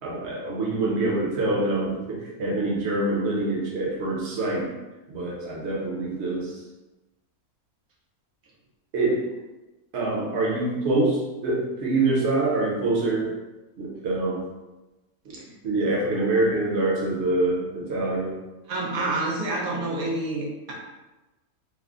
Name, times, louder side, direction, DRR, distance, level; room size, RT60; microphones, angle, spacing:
voice 1, 0.0-4.7 5.1-6.6 8.9-9.3 9.9-13.3 13.8-14.5 15.2-15.4 15.6-18.4, right 2 dB, 55° right, -4 dB, 1.1 m, -25 dB
voice 2, 18.7-20.7, right 2 dB, 80° right, -3 dB, 1.2 m, -28 dB
3.3 x 2.1 x 3.6 m, 1.1 s
omnidirectional pair, 1.5 m